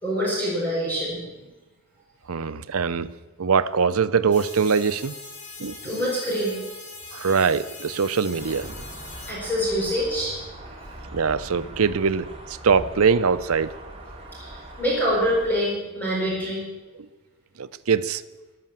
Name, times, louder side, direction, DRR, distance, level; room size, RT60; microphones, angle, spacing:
voice 1, 0.0-1.5 5.8-6.6 9.3-10.4 14.4-16.7, equal, 10° left, -5 dB, 4.8 m, -25 dB
voice 2, 2.3-3.1 3.4-5.1 5.6-5.8 7.1-8.7 11.1-12.3 12.6-13.7 17.6-18.2, right 5 dB, 90° right, 14 dB, 0.7 m, -22 dB
sound 1, 4.3-9.3, left 3 dB, 35° left, 3.1 m, -41 dB
sound 2, 8.4-15.5, right 1 dB, 25° right, 3.1 m, -41 dB
13.5 x 12.0 x 7.5 m, 1.1 s
head